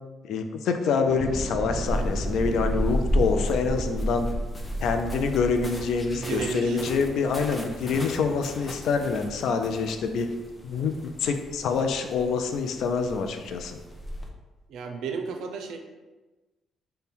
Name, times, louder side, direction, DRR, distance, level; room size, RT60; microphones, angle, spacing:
voice 1, 0.2-4.3 4.8-10.3 10.6-13.8, left 5 dB, 75° left, 6 dB, 0.4 m, -26 dB
Thunder / Explosion, 1.0-9.2, right 1 dB, 5° right, 1.1 m, -36 dB
sound 1, 1.9-14.3, equal, 20° left, 0.6 m, -33 dB
voice 2, 6.1-6.8 14.7-15.8, right 5 dB, 80° right, 5 dB, 0.4 m, -32 dB
3.5 x 2.2 x 4.2 m, 1.2 s
cardioid pair, 90°, 0 cm